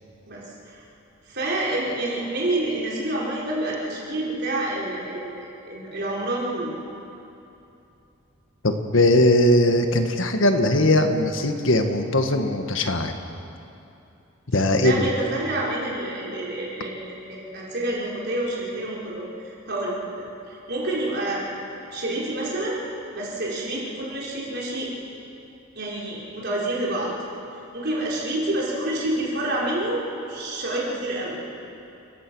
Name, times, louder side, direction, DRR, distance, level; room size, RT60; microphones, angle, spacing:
voice 1, 0.3-0.8 1.3-6.7 14.8-21.5 21.9-22.8 23.1-24.9 25.7-27.1 27.7-30.0 30.3-31.4, right 1 dB, 55° right, -5 dB, 4.7 m, -28 dB
voice 2, 8.6-13.1 14.5-15.1, left 1 dB, 65° left, 6 dB, 1.6 m, -20 dB
29.0 x 15.5 x 6.2 m, 2.8 s
head